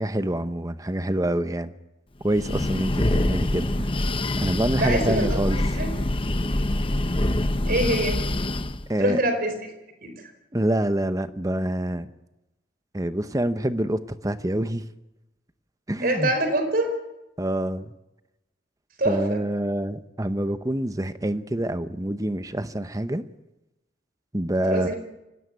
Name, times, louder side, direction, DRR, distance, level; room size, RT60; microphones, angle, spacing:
voice 1, 0.0-1.7 2.2-3.9 4.4-5.6 8.9-9.2 10.5-12.1 12.9-14.9 15.9-16.3 17.4-17.9 19.0-23.2 24.3-24.9, right 1 dB, 20° right, 12 dB, 0.9 m, -26 dB
Breathing, 2.2-8.9, left 1 dB, 30° left, 0.9 m, -25 dB
voice 2, 4.8-5.4 5.7-5.9 7.7-8.2 9.0-9.5 10.0-10.1 16.0-16.9 19.0-19.4 24.7-25.0, right 1 dB, 55° right, 7 dB, 4.7 m, -24 dB
24.5 x 17.5 x 9.6 m, 0.99 s
head